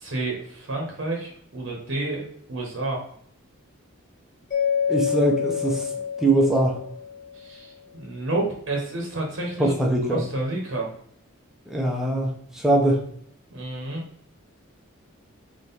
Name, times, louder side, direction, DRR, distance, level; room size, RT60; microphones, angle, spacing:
voice 1, 0.0-2.2 2.5-3.0 7.4-7.7 8.0-9.7 10.1-10.9 13.5-14.0, right 2 dB, 60° right, -1 dB, 1.0 m, -29 dB
Mallet percussion, 4.5-7.5, left 7 dB, 40° left, 1.0 m, -27 dB
voice 2, 4.9-5.9 6.2-6.8 9.6-10.2 11.7-13.0, right 1 dB, ahead, -1 dB, 0.7 m, -22 dB
3.7 x 3.1 x 4.1 m, 0.66 s
head